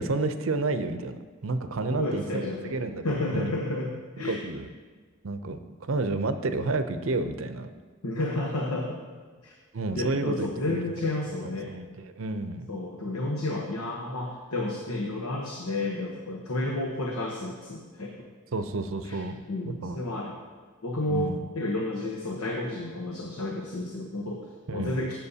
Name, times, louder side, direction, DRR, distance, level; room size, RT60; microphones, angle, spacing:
voice 1, 0.0-3.5 4.2-4.7 5.2-7.7 9.7-10.8 11.7-11.9 12.2-12.7 18.5-19.4 19.7-20.0 21.1-21.4 24.7-24.9, right 3 dB, 65° right, 10 dB, 0.6 m, -30 dB
voice 2, 1.9-2.8 3.0-4.4 8.0-9.0 9.4-9.5 10.0-11.7 12.7-18.3 19.0-19.2 19.5-20.4 20.8-25.2, left 2 dB, 90° left, 0 dB, 1.0 m, -31 dB
16.5 x 7.5 x 2.8 m, 1.4 s
head